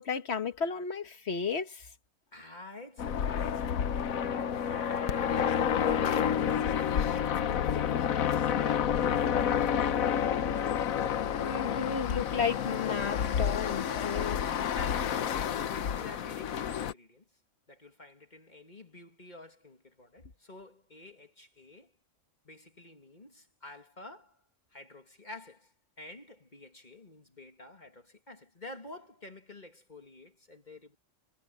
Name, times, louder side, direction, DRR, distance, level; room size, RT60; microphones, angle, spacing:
voice 1, 0.0-1.8 11.3-14.4, left 6 dB, 50° left, 1.7 m, -33 dB
voice 2, 2.3-10.8 14.1-17.2 17.7-21.9 22.4-24.4 24.7-31.0, left 2 dB, 35° left, 2.4 m, -49 dB
sound 1, 3.0-16.9, left 8 dB, 90° left, 1.3 m, -29 dB
omnidirectional pair, 1.4 m